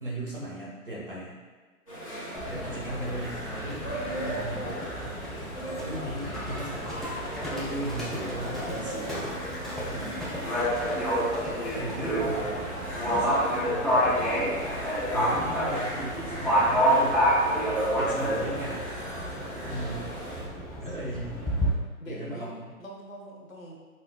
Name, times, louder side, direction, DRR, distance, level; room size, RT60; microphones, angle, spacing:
voice 1, 0.0-1.3 2.5-5.4 5.9-6.9 7.5-9.3 9.9-10.2 11.7-12.6 13.0-13.4 13.7-14.5 15.1-17.2 17.9-18.8 19.6-20.1 20.8-21.4 22.0-22.7, right 1 dB, 35° right, -8 dB, 1.1 m, -37 dB
sound 1, 1.9-20.4, right 1 dB, 25° left, 1.0 m, -37 dB
Livestock farm animals working animals, 2.3-21.7, equal, ahead, 0.4 m, -29 dB
voice 2, 10.2-10.5 11.0-11.7 20.0-20.3 22.0-22.5 22.8-23.8, equal, 60° left, -1 dB, 0.9 m, -44 dB
4.1 x 3.8 x 2.3 m, 1.4 s
hypercardioid pair, 180°, 45 cm